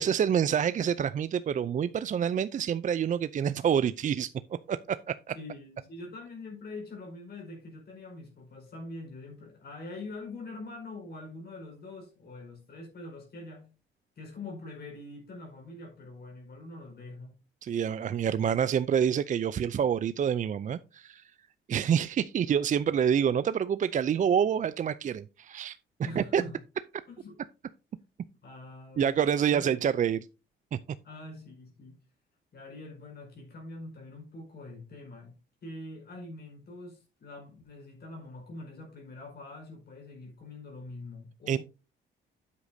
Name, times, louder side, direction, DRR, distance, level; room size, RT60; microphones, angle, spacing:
voice 1, 0.0-4.3 4.7-5.3 17.6-21.3 21.7-25.8 26.2-26.4 29.0-30.3 30.7-30.8 41.5-41.6, right 8 dB, 40° right, 0.4 m, -27 dB
voice 2, 5.3-13.7 14.1-17.4 26.0-26.6 27.1-27.4 28.4-29.7 31.0-32.0 32.5-35.3 35.6-41.6, left 2 dB, 55° left, 4.8 m, -44 dB
9.9 x 8.2 x 2.7 m
cardioid pair, 90°, 20 cm